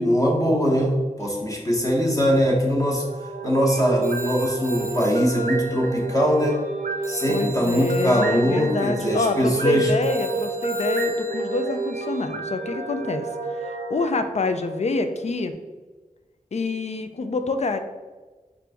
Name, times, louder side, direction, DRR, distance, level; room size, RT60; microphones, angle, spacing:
voice 1, 0.0-3.1 3.4-6.6 7.1-9.9, equal, 25° left, -1 dB, 1.0 m, -22 dB
sound 1, 2.9-15.0, right 3 dB, 90° right, 0.4 m, -30 dB
Telephone, 4.0-6.8 7.0-12.3, right 2 dB, 20° right, 0.6 m, -41 dB
voice 2, 7.3-13.3 13.6-15.5 16.5-17.8, left 3 dB, 55° left, 8 dB, 0.4 m, -26 dB
4.4 x 2.6 x 3.4 m, 1.3 s
wide cardioid pair, 60°, 14 cm